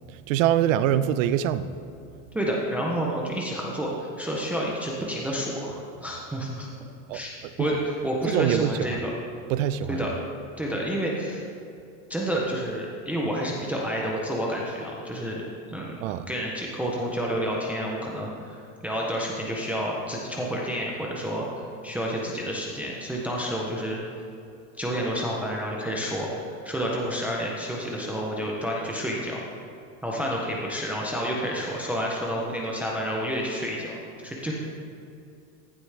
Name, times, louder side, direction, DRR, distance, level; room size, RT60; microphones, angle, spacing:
voice 1, 0.3-1.7 7.1-7.2 7.6-7.7 8.3-8.7 9.5-10.1 16.0-16.2, right 11 dB, 65° right, 14 dB, 0.6 m, -23 dB
voice 2, 2.3-6.7 7.1-7.3 7.6-9.1 9.9-10.2 10.6-11.4 12.1-15.4 15.7-18.6 18.8-21.5 21.8-24.0 24.8-29.4 30.0-34.5, equal, 5° right, -3 dB, 0.4 m, -29 dB
14.5 x 8.1 x 3.3 m, 2.6 s
supercardioid pair, 165°, 42 cm